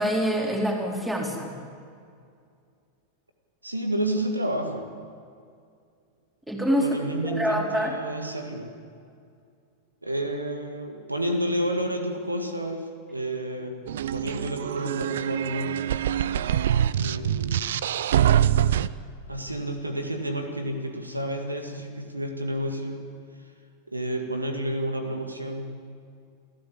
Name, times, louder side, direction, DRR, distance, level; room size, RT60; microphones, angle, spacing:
voice 1, 0.0-1.5 6.5-7.0 7.2-8.0, equal, 5° right, 1 dB, 4.0 m, -25 dB
voice 2, 3.6-4.9 6.8-8.7 10.0-15.8 16.9-17.6 19.3-23.0 23.4-23.5 23.9-25.7, right 1 dB, 85° right, 5 dB, 2.1 m, -30 dB
sound 1, 13.9-18.9, right 10 dB, 60° right, 0.6 m, -24 dB
28.0 x 15.0 x 8.6 m, 2.3 s
figure-of-eight pair, 90°, 0 cm